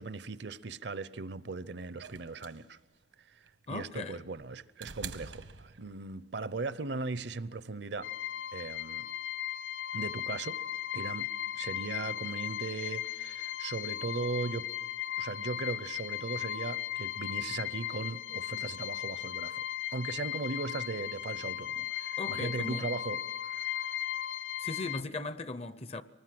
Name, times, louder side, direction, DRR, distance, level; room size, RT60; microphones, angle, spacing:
voice 1, 0.0-2.8 3.3-3.4 3.7-8.1 8.5-9.1 9.9-10.6 10.9-11.3 11.5-14.7 15.2-19.6 19.9-23.9, right 3 dB, 60° right, 0.7 m, -38 dB
sound 1, 2.0-6.3 7.5-7.6, right 6 dB, 85° right, 1.2 m, -47 dB
voice 2, 3.7-4.2 22.2-23.0 24.6-26.0, left 3 dB, 30° left, 0.6 m, -38 dB
sound 2, 8.0-25.0, left 11 dB, 70° left, 0.6 m, -37 dB
24.0 x 19.5 x 7.7 m
head